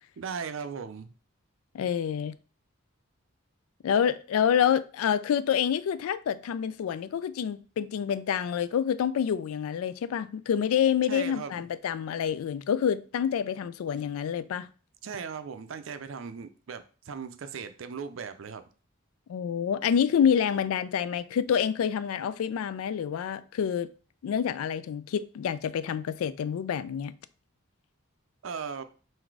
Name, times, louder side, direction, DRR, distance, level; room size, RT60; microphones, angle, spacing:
voice 1, 0.2-1.1 11.1-11.6 15.0-18.6 28.4-28.8, right 6 dB, 65° right, 0.4 m, -37 dB
voice 2, 1.7-2.4 3.8-14.7 19.3-23.9 24.2-27.1, left 8 dB, 85° left, 0.3 m, -27 dB
3.9 x 2.6 x 4.6 m
head